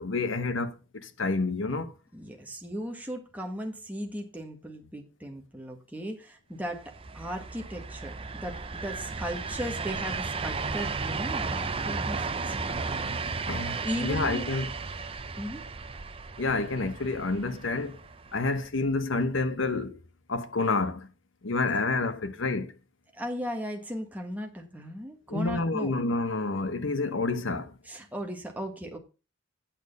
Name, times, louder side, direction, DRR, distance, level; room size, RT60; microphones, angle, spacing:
voice 1, 0.0-1.9 13.5-14.7 16.4-18.0 18.3-20.0 20.3-21.1 21.4-22.7 25.3-27.7, left 3 dB, 85° left, 1.0 m, -29 dB
voice 2, 2.1-13.0 13.8-14.6 15.4-15.7 23.1-25.9 27.8-29.0, equal, 10° right, 1.6 m, -37 dB
sound 1, 6.7-18.7, right 4 dB, 30° right, 0.6 m, -34 dB
9.0 x 6.6 x 5.3 m
head